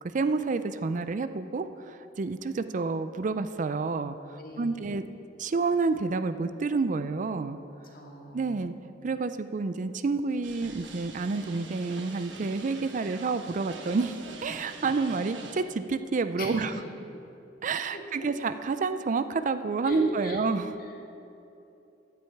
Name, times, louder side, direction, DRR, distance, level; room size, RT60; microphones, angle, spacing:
voice 1, 0.0-5.0 5.4-7.6 8.3-8.7 9.0-16.7 17.6-20.7, right 4 dB, 45° right, 11 dB, 0.4 m, -29 dB
voice 2, 4.4-4.8 7.9-8.6 14.8-15.0 16.4-16.8 17.9-18.3 19.8-20.4 20.8-21.0, equal, 50° left, 0 dB, 1.9 m, -39 dB
sound 1, 10.4-15.6, right 3 dB, 85° right, 1.2 m, -44 dB
15.5 x 9.5 x 4.7 m, 2.8 s
head